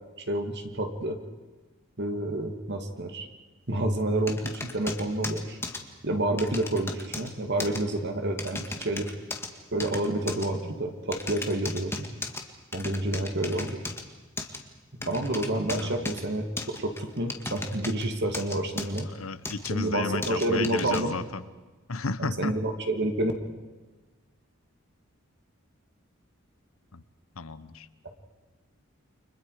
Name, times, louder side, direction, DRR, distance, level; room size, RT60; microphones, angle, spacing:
voice 1, 0.3-1.2 2.0-3.3 3.7-5.6 6.0-9.1 9.7-12.0 12.7-13.8 15.0-16.4 16.8-19.1 19.7-21.2 22.2-23.3, right 1 dB, 55° right, 5 dB, 2.5 m, -29 dB
sound 1, 4.3-5.8 6.4-7.3 7.6-7.8 8.4-9.5 9.8-10.5 11.1-12.4 12.7-14.0 14.4-14.6 15.0-16.2 16.6-18.0 18.3-19.0 19.4-19.7 20.2-21.0, left 2 dB, 10° left, 1.9 m, -35 dB
voice 2, 15.0-15.5 15.7-16.1 19.0-21.4 21.9-22.6 26.9-27.0 27.4-27.9, left 3 dB, 85° left, 14 dB, 1.0 m, -33 dB
30.0 x 24.5 x 5.0 m, 1.3 s
head